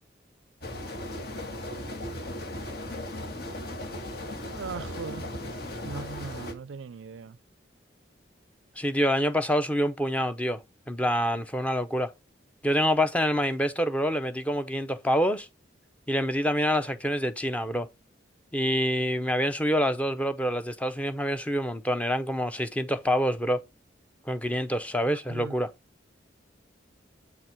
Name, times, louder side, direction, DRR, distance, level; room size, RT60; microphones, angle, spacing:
sound 1, 0.6-6.5, left 1 dB, 55° left, 1.4 m, -37 dB
voice 1, 4.5-5.3 5.8-7.4 25.1-25.5, right 5 dB, 80° right, 0.4 m, -39 dB
voice 2, 8.8-10.6 10.9-12.1 12.6-15.5 16.1-17.9 18.5-23.6 24.3-25.7, equal, 5° left, 0.6 m, -26 dB
8.1 x 4.1 x 4.4 m
head